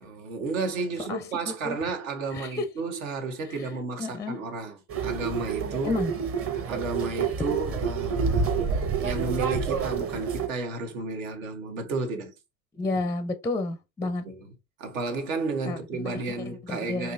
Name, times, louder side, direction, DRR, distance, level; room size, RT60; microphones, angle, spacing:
voice 1, 0.0-4.8 5.0-6.0 6.7-8.6 9.0-12.3 14.0-14.4 14.8-17.1, right 3 dB, 75° right, 1.3 m, -32 dB
voice 2, 1.0-1.8 2.3-2.7 3.4-3.7 4.0-4.4 5.8-6.1 12.7-14.2 15.7-17.1, left 2 dB, 10° left, 0.4 m, -31 dB
sound 1, 4.9-10.5, right 6 dB, 35° right, 0.9 m, -28 dB
4.7 x 2.9 x 2.5 m
hypercardioid pair, 85°, 40 cm